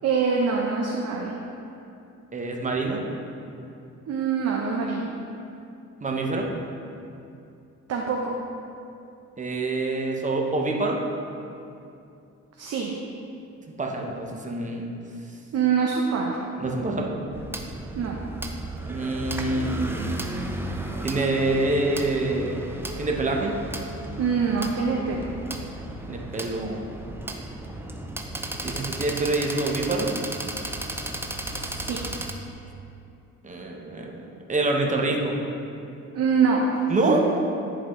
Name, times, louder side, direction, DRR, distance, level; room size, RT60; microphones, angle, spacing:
voice 1, 0.0-1.3 4.1-5.1 7.9-8.4 12.6-12.9 15.5-16.4 17.9-18.2 24.2-25.3 31.5-32.0 36.1-36.8 37.1-37.2, right 5 dB, 55° right, -1 dB, 0.7 m, -24 dB
voice 2, 2.3-3.0 6.0-6.5 9.4-11.0 13.8-14.9 16.6-17.2 18.8-20.0 21.0-22.6 23.0-23.6 26.1-26.8 28.6-30.1 33.4-34.2 34.5-35.3 36.9-37.2, right 2 dB, 25° right, 0 dB, 0.9 m, -26 dB
sound 1, 17.3-32.3, right 1 dB, 10° right, 0.5 m, -34 dB
10.5 x 4.0 x 3.1 m, 2.6 s
cardioid pair, 90°, 30 cm